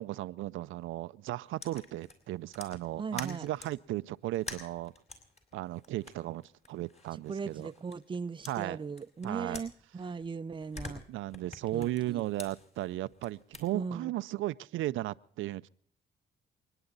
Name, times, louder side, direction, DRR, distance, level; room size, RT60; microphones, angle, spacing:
voice 1, 0.0-4.9 5.5-6.4 6.7-7.7 8.5-8.8 9.2-9.6 11.1-15.7, right 16 dB, 85° right, 0.5 m, -35 dB
sound 1, 1.6-3.8 4.3-8.2 8.4-10.3 10.5-13.7, left 2 dB, 35° left, 4.6 m, -48 dB
voice 2, 3.0-3.5 7.3-11.0 11.7-12.2 13.7-14.1, right 5 dB, 25° right, 0.6 m, -38 dB
28.5 x 10.0 x 3.9 m
cardioid pair, 90°, 20 cm